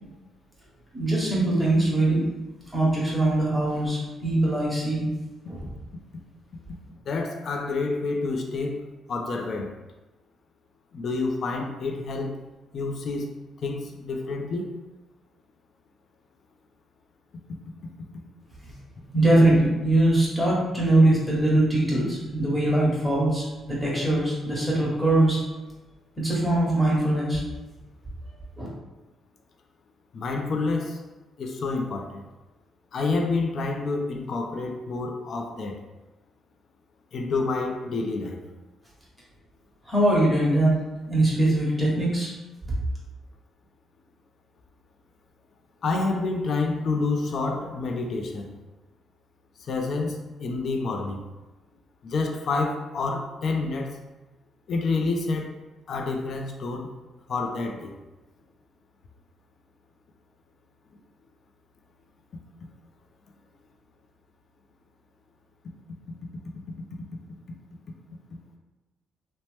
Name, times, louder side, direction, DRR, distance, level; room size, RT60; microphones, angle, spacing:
voice 1, 0.9-2.2 2.7-5.1 5.5-5.6 18.6-18.7 19.0-25.4 26.2-27.4 28.6-28.7 39.8-40.7 41.1-42.3, right 1 dB, 5° right, -6 dB, 1.1 m, -22 dB
voice 2, 7.1-9.7 10.9-12.4 12.7-13.3 13.6-14.7 30.1-31.0 31.4-32.2 32.9-35.8 37.1-38.4 45.8-48.5 49.7-51.2 52.0-54.0 54.7-55.5 55.9-56.9 57.3-57.9, left 3 dB, 55° left, 3 dB, 0.4 m, -28 dB
2.9 x 2.1 x 3.1 m, 1.1 s
cardioid pair, 90°, 0 cm